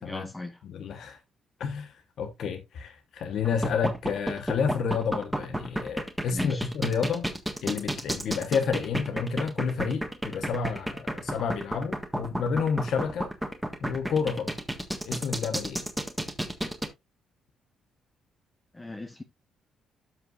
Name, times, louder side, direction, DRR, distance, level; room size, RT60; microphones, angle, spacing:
voice 1, 0.0-0.6 6.3-6.7 18.7-19.2, left 2 dB, 15° left, 1.1 m, -37 dB
voice 2, 0.6-1.2 1.6-7.3 7.6-13.3 13.8-14.6 15.1-15.8, left 6 dB, 65° left, 1.2 m, -30 dB
sound 1, 3.4-16.9, right 1 dB, 5° right, 1.6 m, -31 dB
13.0 x 5.4 x 2.5 m
cardioid pair, 90°, 0 cm